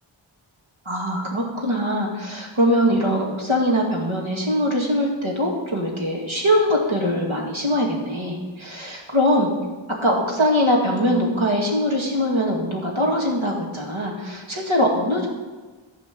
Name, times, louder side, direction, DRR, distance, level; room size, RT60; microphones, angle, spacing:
voice 1, 0.9-9.5 10.0-15.3, equal, 85° right, -2 dB, 2.3 m, -22 dB
12.0 x 5.0 x 7.6 m, 1.3 s
wide cardioid pair, 40°, 47 cm